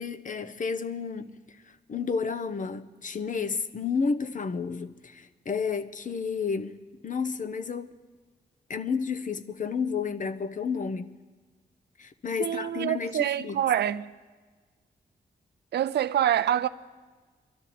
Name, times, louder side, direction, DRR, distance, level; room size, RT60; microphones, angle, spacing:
voice 1, 0.0-7.9 8.7-11.1 12.0-13.6, left 5 dB, 50° left, 0.8 m, -31 dB
voice 2, 12.4-14.1 15.7-16.7, right 11 dB, 85° right, 0.5 m, -26 dB
23.5 x 12.5 x 4.3 m
cardioid pair, 70°, 17 cm